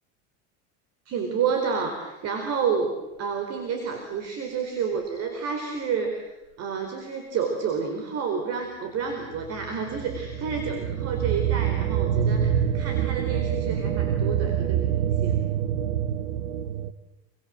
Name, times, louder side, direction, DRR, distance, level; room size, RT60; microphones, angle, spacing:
voice 1, 1.1-6.2 6.6-15.4, right 6 dB, 45° right, 5 dB, 4.4 m, -29 dB
sound 1, 9.1-16.9, right 9 dB, 90° right, 1.5 m, -26 dB
27.5 x 24.0 x 7.8 m, 1.0 s
supercardioid pair, 125°, 35 cm